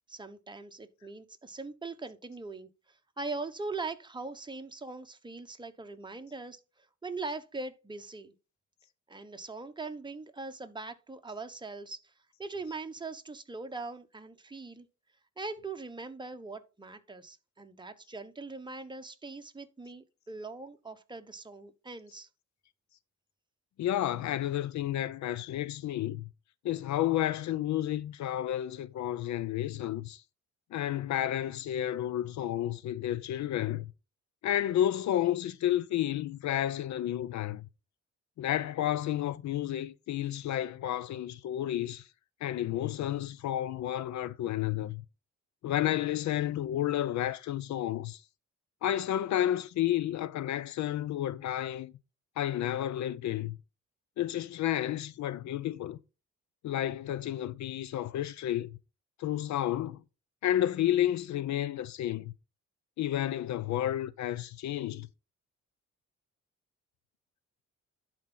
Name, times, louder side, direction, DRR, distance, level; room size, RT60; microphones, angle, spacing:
voice 1, 0.1-8.3 9.1-12.1 12.4-14.9 15.4-22.3, right 3 dB, 15° right, 1.1 m, -41 dB
voice 2, 23.8-26.2 26.6-30.2 30.7-33.8 34.4-37.6 38.4-42.0 42.4-45.0 45.6-48.2 48.8-51.9 52.4-53.6 54.2-56.0 56.6-58.7 59.2-60.0 60.4-62.3 63.0-65.1, left 12 dB, 70° left, 0.6 m, -31 dB
11.0 x 4.5 x 3.8 m
cardioid pair, 90°, 30 cm